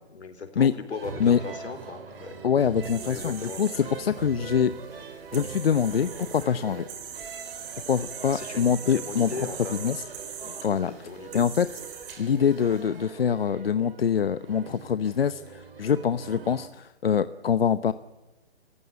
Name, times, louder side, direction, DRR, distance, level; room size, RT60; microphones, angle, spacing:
voice 1, 0.1-2.3 3.0-3.9 8.3-9.8 10.4-11.4, left 4 dB, 80° left, 9 dB, 4.2 m, -38 dB
sound 1, 0.9-16.7, right 5 dB, 55° right, 3.8 m, -42 dB
voice 2, 2.4-4.7 5.3-6.9 7.9-9.3 9.7-10.0 10.6-10.9 11.3-11.7 12.2-17.9, left 7 dB, 60° left, 13 dB, 0.9 m, -24 dB
sound 2, 2.8-12.8, right 7 dB, 15° right, 2.2 m, -42 dB
27.5 x 15.5 x 8.3 m, 1.1 s
hypercardioid pair, 170°, 33 cm